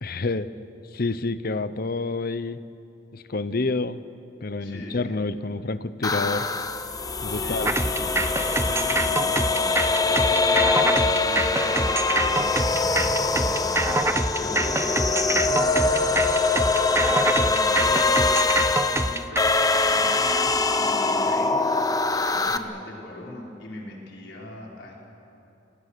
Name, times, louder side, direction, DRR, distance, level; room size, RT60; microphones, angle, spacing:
voice 1, 0.0-0.5 0.9-2.6 3.1-4.0 4.4-6.5 7.2-7.7, left 3 dB, 50° left, 14 dB, 0.8 m, -28 dB
voice 2, 4.6-5.2 7.3-8.1 8.6-16.1 17.3-21.5 22.2-24.9, left 1 dB, 65° left, -3 dB, 5.6 m, -40 dB
sound 1, 6.0-22.6, left 3 dB, 20° left, 0.8 m, -23 dB
sound 2, 6.6-19.2, right 1 dB, 40° right, 2.6 m, -45 dB
sound 3, 7.6-19.4, right 2 dB, 15° right, 0.6 m, -26 dB
29.0 x 23.5 x 6.8 m, 2.8 s
head